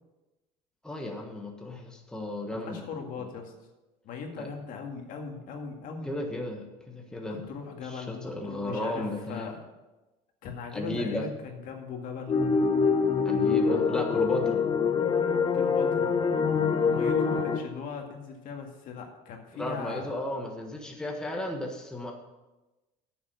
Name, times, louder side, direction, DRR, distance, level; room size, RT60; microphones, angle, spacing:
voice 1, 0.8-2.8 3.2-3.3 4.4-4.5 6.0-7.4 7.8-9.5 10.7-11.2 13.2-14.6 19.5-22.1, left 1 dB, 5° left, 1 dB, 1.4 m, -34 dB
voice 2, 2.5-3.5 4.0-6.1 7.1-9.6 10.4-12.4 15.5-16.1 16.9-20.1, left 5 dB, 55° left, 3 dB, 2.0 m, -39 dB
sound 1, 12.3-17.6, left 5 dB, 30° left, 1.3 m, -25 dB
9.3 x 7.2 x 6.8 m, 1.1 s
cardioid pair, 120°, 16 cm